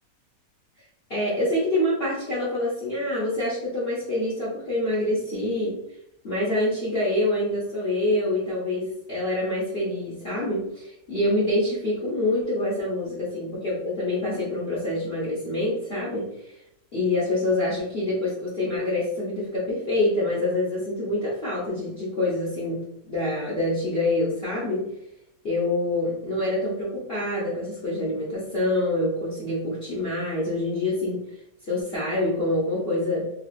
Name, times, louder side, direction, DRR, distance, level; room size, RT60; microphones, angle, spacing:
voice 1, 1.1-5.8 6.2-16.6 16.9-24.9 25.4-33.3, left 1 dB, 40° left, -9 dB, 1.1 m, -26 dB
3.4 x 3.1 x 2.4 m, 0.75 s
omnidirectional pair, 1.8 m